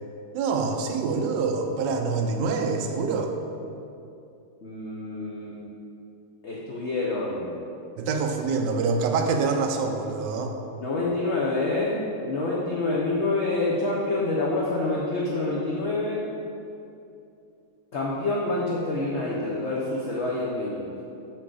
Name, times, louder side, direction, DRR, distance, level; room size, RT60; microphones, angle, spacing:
voice 1, 0.3-3.3 8.0-10.5, right 4 dB, 70° right, 4 dB, 1.2 m, -26 dB
voice 2, 4.6-5.6 6.4-7.5 10.8-16.3 17.9-20.9, left 2 dB, 60° left, -4 dB, 0.7 m, -27 dB
7.3 x 6.3 x 3.8 m, 2.7 s
omnidirectional pair, 2.2 m